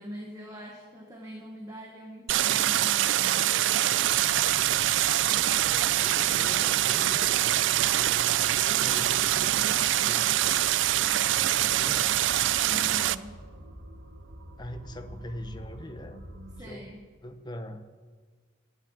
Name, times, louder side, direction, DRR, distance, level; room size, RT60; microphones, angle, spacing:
voice 1, 0.0-3.6 12.6-13.4 16.6-17.0, equal, 20° right, 0 dB, 1.3 m, -42 dB
Stream, 2.3-13.2, right 13 dB, 70° right, 0.4 m, -24 dB
sound 1, 4.0-16.6, right 1 dB, 90° right, 1.4 m, -46 dB
voice 2, 4.5-4.9 5.6-10.5 11.2-12.1 14.6-16.2 16.5-16.9 17.2-17.8, left 1 dB, 20° left, 7 dB, 0.8 m, -43 dB
11.0 x 9.3 x 8.8 m, 1.5 s
head